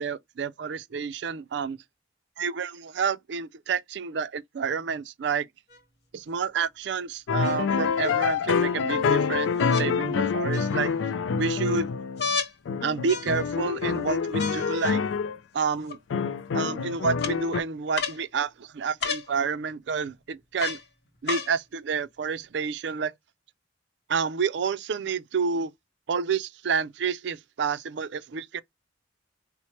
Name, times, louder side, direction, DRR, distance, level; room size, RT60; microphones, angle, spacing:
voice 1, 0.0-1.8 2.4-5.5 6.1-11.9 12.8-15.0 15.5-16.0 16.5-20.8 21.2-23.1 24.1-25.7 26.1-28.6, right 5 dB, 65° right, 0.4 m, -29 dB
sound 1, 5.7-5.8 7.4-8.1 9.7-9.9 10.5-11.0 12.2-12.5 13.1-13.6 14.4-14.9 15.9-16.0 17.2-17.3 18.0-18.2 19.0-19.3 20.6-20.8 21.3-21.5 22.4-22.5, left 5 dB, 60° left, 0.9 m, -32 dB
sound 2, 7.3-12.3 12.7-15.4 16.1-17.6, left 5 dB, 85° left, 0.4 m, -26 dB
4.3 x 2.1 x 2.9 m
head